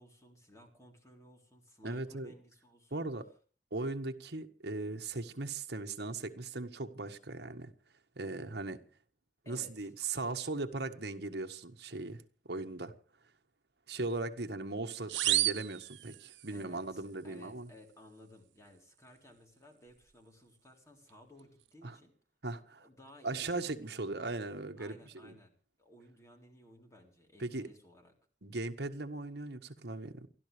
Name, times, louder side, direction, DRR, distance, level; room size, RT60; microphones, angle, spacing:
voice 1, 0.0-3.1 9.4-9.9 16.5-22.1 22.8-23.8 24.2-28.2, left 1 dB, 15° left, 3.7 m, -57 dB
voice 2, 1.8-2.3 2.9-3.2 3.7-7.7 8.2-8.8 9.5-12.2 12.5-12.9 13.9-17.7 21.8-22.0 22.4-22.9 23.2-25.0 25.2-25.3 27.4-27.7 28.4-30.3, right 2 dB, 60° right, 1.5 m, -38 dB
sound 1, 15.1-16.6, right 15 dB, 80° right, 0.7 m, -32 dB
29.0 x 12.5 x 3.4 m
head